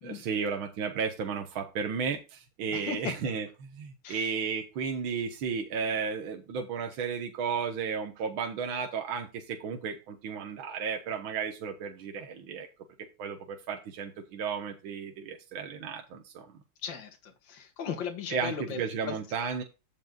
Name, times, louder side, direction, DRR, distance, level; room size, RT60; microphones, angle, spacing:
voice 1, 0.0-12.7 13.2-16.5 18.3-19.6, right 6 dB, 75° right, 2.0 m, -33 dB
voice 2, 2.7-3.1 4.0-4.3 16.8-19.2, left 6 dB, 65° left, 2.2 m, -37 dB
15.5 x 5.4 x 2.4 m
omnidirectional pair, 2.3 m